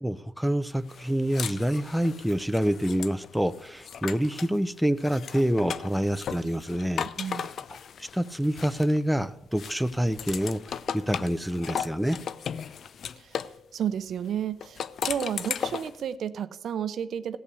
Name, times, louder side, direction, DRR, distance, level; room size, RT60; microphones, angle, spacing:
voice 1, 0.0-7.5 8.0-12.2, equal, ahead, 11 dB, 0.5 m, -27 dB
sound 1, 0.9-4.6 5.0-9.2 9.6-13.6 14.6-16.0, left 7 dB, 60° left, 0.5 m, -36 dB
voice 2, 7.2-7.5 13.2-13.4 13.7-17.4, right 9 dB, 65° right, 13 dB, 0.7 m, -32 dB
15.5 x 5.5 x 8.3 m, 0.83 s
cardioid pair, 90°, 0 cm